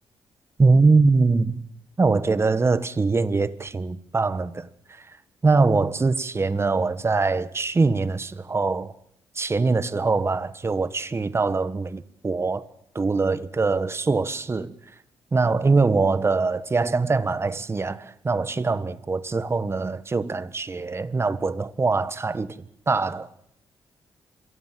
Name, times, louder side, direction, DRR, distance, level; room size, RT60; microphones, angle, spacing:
voice 1, 0.6-1.6 2.0-4.7 5.4-8.9 9.4-12.6 12.9-14.7 15.3-22.6 22.9-23.3, right 3 dB, 25° right, 1.4 m, -23 dB
26.5 x 22.5 x 7.6 m
cardioid pair, 115°, 9 cm